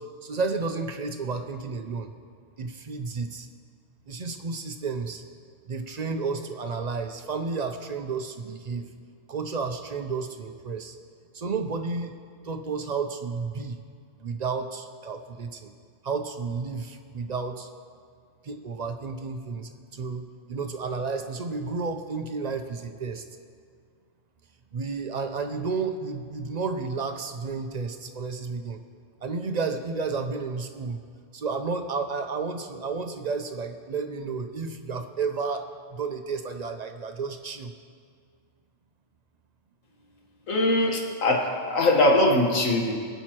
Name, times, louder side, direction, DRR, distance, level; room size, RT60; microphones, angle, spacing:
voice 1, 0.0-2.1 2.6-3.5 4.1-5.2 5.7-8.9 9.3-11.0 11.3-12.1 12.4-13.8 14.2-15.7 16.0-17.7 18.4-20.2 20.5-23.2 24.7-28.8 29.2-31.0 31.3-37.7, right 4 dB, 45° right, 6 dB, 0.5 m, -32 dB
voice 2, 40.5-42.9, left 1 dB, 85° left, 0 dB, 1.8 m, -21 dB
22.5 x 8.0 x 2.9 m, 2.1 s
omnidirectional pair, 1.3 m